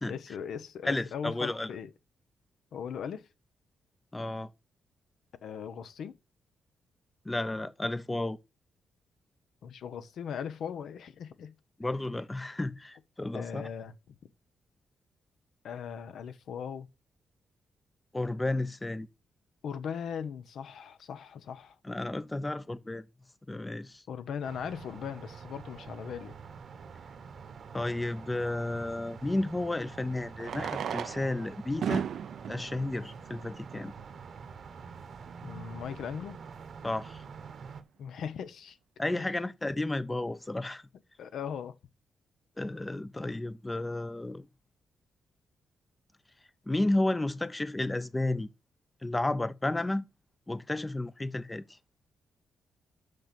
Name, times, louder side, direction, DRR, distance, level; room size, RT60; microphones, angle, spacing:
voice 1, 0.1-1.9 2.7-3.3 5.4-6.1 9.6-11.5 13.3-14.2 15.6-16.9 19.6-21.8 24.1-26.3 35.4-36.4 38.0-38.8 39.1-39.3 41.2-41.7, left 7 dB, 75° left, 0.9 m, -39 dB
voice 2, 0.8-1.7 4.1-4.5 7.2-8.4 11.8-13.7 18.1-19.1 21.8-23.0 23.5-24.0 27.7-32.1 32.5-33.9 36.8-37.2 39.0-40.8 42.6-44.5 46.7-48.5 49.0-50.1 50.5-51.6, left 2 dB, 15° left, 0.6 m, -32 dB
sound 1, 24.4-37.8, right 5 dB, 55° right, 1.2 m, -47 dB
Fireworks, 26.8-26.9 29.2-29.3 30.3-34.1 34.8-34.9 35.1-35.2 35.4-35.5 36.1-36.3, right 8 dB, 70° right, 0.6 m, -36 dB
6.5 x 6.0 x 6.7 m
cardioid pair, 110°, 0 cm